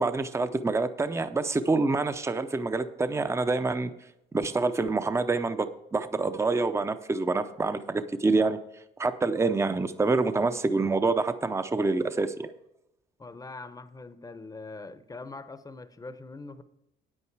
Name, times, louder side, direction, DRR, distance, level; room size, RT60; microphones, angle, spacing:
voice 1, 0.0-3.9 4.3-8.6 9.0-12.5, right 3 dB, 15° right, 11 dB, 0.6 m, -26 dB
voice 2, 13.2-16.6, left 3 dB, 20° left, 12 dB, 0.7 m, -42 dB
9.0 x 8.7 x 4.7 m, 0.85 s
cardioid pair, 90°, 20 cm